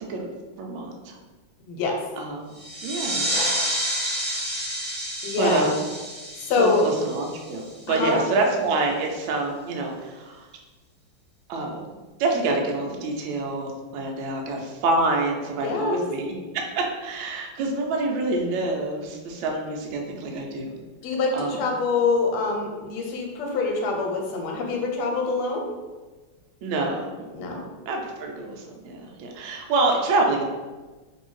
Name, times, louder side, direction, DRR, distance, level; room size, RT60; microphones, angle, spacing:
voice 1, 0.6-1.2 2.2-2.4 2.8-3.4 5.4-5.8 6.6-10.5 11.5-11.9 12.2-20.8 21.3-21.7 26.6-30.4, right 2 dB, 75° right, 1 dB, 1.3 m, -27 dB
voice 2, 1.6-2.0 5.2-5.7 6.4-6.8 7.9-8.2 15.6-16.0 21.0-25.6 27.3-27.6, left 4 dB, 90° left, 1 dB, 1.5 m, -25 dB
sound 1, 2.5-7.9, right 1 dB, 25° right, 0.6 m, -29 dB
3.1 x 2.7 x 3.1 m, 1.3 s
omnidirectional pair, 2.3 m